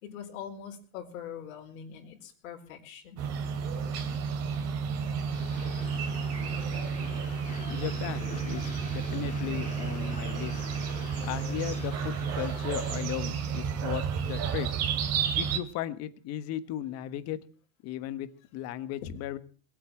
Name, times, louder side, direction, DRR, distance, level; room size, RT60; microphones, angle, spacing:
voice 1, 0.0-3.3 5.9-6.4 7.5-7.8 19.0-19.1, left 8 dB, 75° left, -1 dB, 4.3 m, -43 dB
sound 1, 3.2-15.6, right 6 dB, 35° right, 2.7 m, -31 dB
Train, 5.3-13.0, left 6 dB, 20° left, 2.0 m, -46 dB
voice 2, 7.7-10.6 11.2-14.7 15.4-17.4 17.8-19.4, left 12 dB, 35° left, 13 dB, 1.3 m, -36 dB
20.5 x 8.7 x 7.7 m, 0.42 s
supercardioid pair, 150°, 42 cm